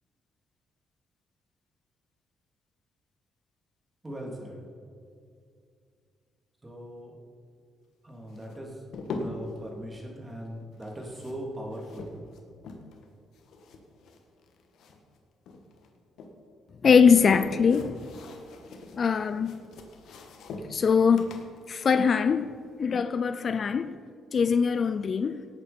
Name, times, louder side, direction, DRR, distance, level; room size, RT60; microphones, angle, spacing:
voice 1, 4.0-4.6 6.6-7.1 8.0-8.8 9.1-12.1, equal, 20° right, 3.1 m, -39 dB
sound 1, 8.3-9.6 10.7-13.1 13.3-15.2 15.5-16.3 16.9-22.9, left 3 dB, 75° left, 1.5 m, -42 dB
voice 2, 16.8-18.0 19.0-19.6 20.7-24.0 24.3-25.5, left 6 dB, 45° left, 0.4 m, -23 dB
17.5 x 9.2 x 4.4 m
cardioid pair, 90°, 0 cm